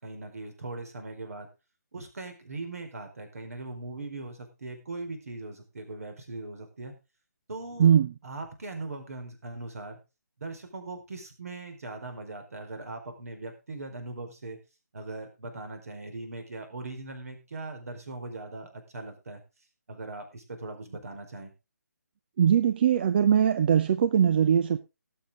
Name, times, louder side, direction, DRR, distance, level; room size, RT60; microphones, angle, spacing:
voice 1, 0.0-1.5 1.9-6.9 7.5-7.9 8.2-10.0 10.4-14.6 14.9-19.4 19.9-21.5, right 2 dB, 60° right, 6 dB, 4.6 m, -40 dB
voice 2, 7.8-8.1 22.4-24.8, right 8 dB, 35° right, 12 dB, 0.6 m, -21 dB
18.0 x 7.7 x 3.8 m, 0.28 s
figure-of-eight pair, 145°, 9 cm